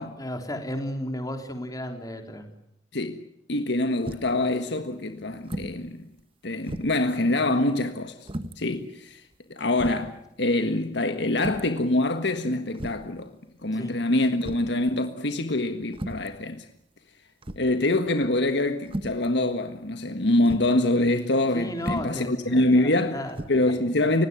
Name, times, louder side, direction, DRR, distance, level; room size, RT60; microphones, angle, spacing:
voice 1, 0.0-2.5 13.7-14.0 21.5-23.4 23.6-23.8, left 1 dB, 20° left, 3.8 m, -34 dB
voice 2, 2.9-3.2 3.5-6.1 6.4-8.3 8.6-9.2 9.5-13.3 13.6-16.7 17.5-23.2 23.5-24.3, left 2 dB, 70° left, 1.6 m, -25 dB
sound 1, 4.1-4.4 5.4-5.8 6.2-6.3 6.7-7.1 8.3-8.6 9.3-9.4 9.8-10.1 11.4-11.8 12.7-13.1 14.4-14.8 15.9-16.3 17.4-17.8 18.8-19.3 20.5-20.7 21.8-22.2 23.3-23.5, right 1 dB, 30° right, 1.3 m, -35 dB
30.0 x 17.5 x 9.5 m
head